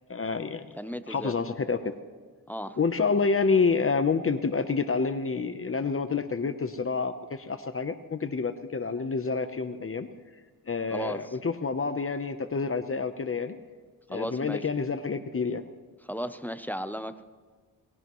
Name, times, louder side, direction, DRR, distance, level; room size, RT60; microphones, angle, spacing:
voice 1, 0.1-0.7 1.1-1.9 2.8-10.1 10.7-13.6 14.1-15.6, left 4 dB, 35° left, 9 dB, 0.8 m, -28 dB
voice 2, 0.7-1.3 2.5-2.8 10.9-11.4 14.1-14.7 16.1-17.2, equal, 5° left, 11 dB, 0.6 m, -35 dB
20.5 x 16.5 x 3.1 m, 1.5 s
cardioid pair, 85°, 37 cm